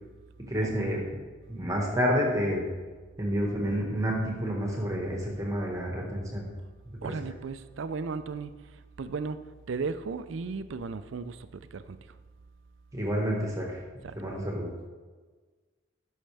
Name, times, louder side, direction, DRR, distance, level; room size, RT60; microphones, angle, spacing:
voice 1, 0.5-1.0 1.5-2.6 3.2-6.5 12.9-13.7 14.1-14.7, equal, 15° right, -1 dB, 1.6 m, -29 dB
voice 2, 7.0-9.4 9.7-12.0 14.0-14.2, right 4 dB, 80° right, 12 dB, 0.5 m, -35 dB
14.5 x 6.4 x 3.4 m, 1.4 s
head